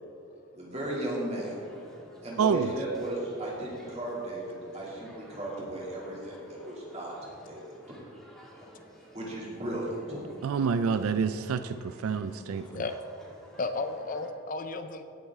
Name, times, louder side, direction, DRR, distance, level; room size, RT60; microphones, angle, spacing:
voice 1, 0.5-1.6 2.2-7.1 7.4-7.6 9.1-10.2, right 1 dB, 30° right, -5 dB, 2.6 m, -35 dB
sound 1, 0.8-14.3, equal, ahead, 1.4 m, -53 dB
voice 2, 2.4-2.7 10.4-12.8, right 6 dB, 80° right, 11 dB, 0.4 m, -28 dB
voice 3, 13.6-15.0, left 3 dB, 40° left, 8 dB, 0.4 m, -33 dB
17.0 x 7.1 x 3.6 m, 2.6 s
head